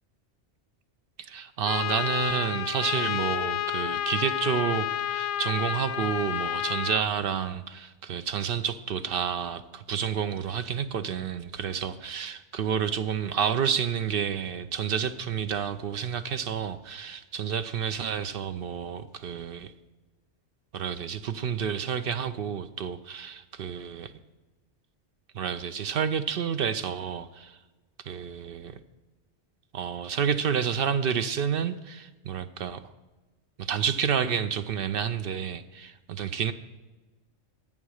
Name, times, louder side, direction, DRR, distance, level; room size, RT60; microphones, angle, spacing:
voice 1, 1.2-19.7 20.7-24.1 25.3-27.6 28.0-28.8 29.7-32.8 33.6-36.5, right 7 dB, 60° right, 11 dB, 0.7 m, -30 dB
Trumpet, 1.6-7.0, left 11 dB, 70° left, 0.9 m, -30 dB
11.0 x 8.4 x 6.3 m, 1.2 s
omnidirectional pair, 1.2 m